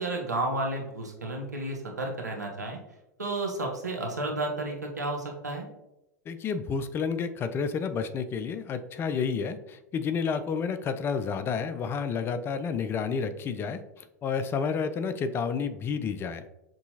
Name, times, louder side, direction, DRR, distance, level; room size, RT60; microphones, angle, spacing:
voice 1, 0.0-2.8 3.2-5.7, right 2 dB, 85° right, 0 dB, 0.9 m, -32 dB
voice 2, 6.3-16.4, left 6 dB, 25° left, 11 dB, 0.3 m, -30 dB
6.1 x 2.7 x 2.7 m, 0.91 s
figure-of-eight pair, 95°, 9 cm